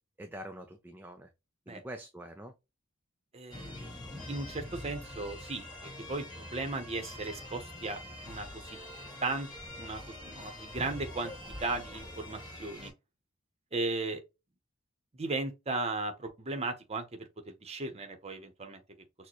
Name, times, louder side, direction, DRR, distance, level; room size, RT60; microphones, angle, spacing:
voice 1, 0.2-1.3 1.7-2.5, right 1 dB, 10° right, 0.4 m, -45 dB
voice 2, 3.3-3.7 4.3-5.7 6.1-8.0 8.3-8.8 9.2-9.5 9.7-11.3 11.6-12.9 13.7-14.2 15.2-17.2 17.5-18.8, right 3 dB, 30° right, 0.8 m, -36 dB
sound 1, 3.5-12.9, left 1 dB, 20° left, 1.7 m, -45 dB
6.4 x 2.1 x 2.9 m
head